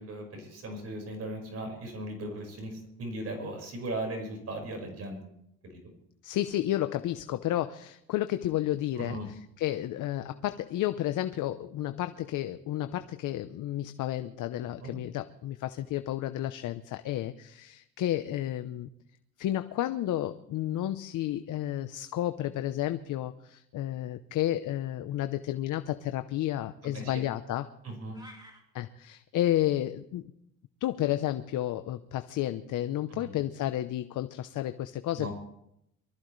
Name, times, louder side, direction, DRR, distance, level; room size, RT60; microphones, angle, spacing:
voice 1, 0.0-5.2 5.7-5.8 9.0-9.3 14.8-14.9 26.8-27.2 27.8-28.2 33.1-33.3 35.2-35.3, right 1 dB, 45° right, 3 dB, 5.1 m, -38 dB
voice 2, 6.2-18.9 19.4-27.7 28.7-30.3 30.8-35.3, left 13 dB, 65° left, 10 dB, 0.8 m, -31 dB
sound 1, 28.1-28.6, equal, 10° right, 2.7 m, -50 dB
24.0 x 14.0 x 3.2 m, 0.76 s
cardioid pair, 125°, 34 cm